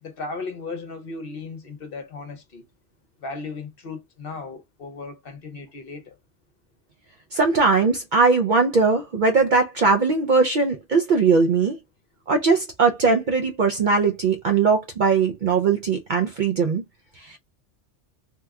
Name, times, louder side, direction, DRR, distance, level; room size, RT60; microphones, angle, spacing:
voice 1, 0.0-2.7 3.2-6.2, left 3 dB, 55° left, 0.9 m, -36 dB
voice 2, 7.3-11.8 12.3-16.8 17.2-17.4, right 4 dB, 60° right, 0.5 m, -20 dB
2.9 x 2.2 x 3.5 m
omnidirectional pair, 1.2 m